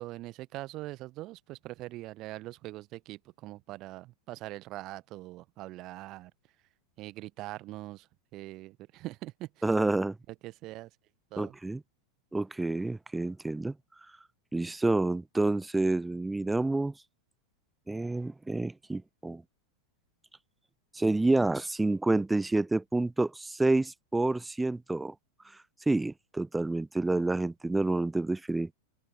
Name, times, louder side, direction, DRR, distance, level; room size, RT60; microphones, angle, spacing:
voice 1, 0.0-6.3 7.0-8.1 8.3-9.6 10.4-10.9 11.3-11.5, right 17 dB, 35° right, 1.1 m, -42 dB
voice 2, 9.6-10.2 11.4-11.8 12.3-13.7 14.5-16.9 17.9-19.4 20.9-25.1 25.9-28.7, right 2 dB, 5° right, 0.4 m, -28 dB
figure-of-eight pair, 90°, 0 cm